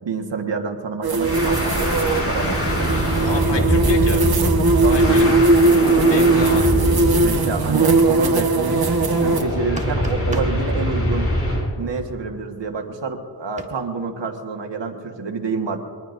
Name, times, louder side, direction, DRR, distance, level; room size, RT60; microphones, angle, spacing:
voice 1, 0.0-1.9 2.2-3.6 4.8-5.2 7.2-8.9 9.2-11.3 11.7-15.8, right 4 dB, 85° right, 3 dB, 1.5 m, -28 dB
sound 1, 1.0-9.4, right 3 dB, 60° right, 1.2 m, -19 dB
sound 2, 1.2-11.7, equal, 35° left, 3.7 m, -23 dB
voice 2, 3.3-4.3 4.9-6.7, left 3 dB, 80° left, 4 dB, 1.6 m, -29 dB
sound 3, 9.5-10.6 13.6-13.7, right 1 dB, 15° right, 1.5 m, -33 dB
23.5 x 20.0 x 2.6 m, 2.2 s
wide cardioid pair, 85°, 42 cm